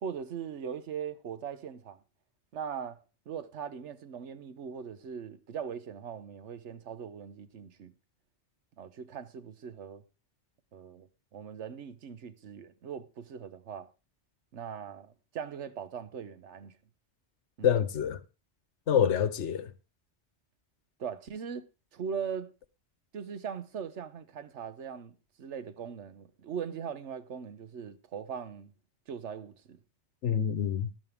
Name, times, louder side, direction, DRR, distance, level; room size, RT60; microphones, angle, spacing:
voice 1, 0.0-2.0 2.5-7.9 8.8-10.0 10.7-13.9 14.5-16.8 17.6-17.7 21.0-21.7 21.9-22.5 23.1-28.7 29.1-29.8, right 7 dB, 80° right, 1.2 m, -40 dB
voice 2, 17.6-18.2 18.9-19.7 30.2-30.9, left 8 dB, 85° left, 1.2 m, -26 dB
13.0 x 11.5 x 3.5 m
omnidirectional pair, 1.2 m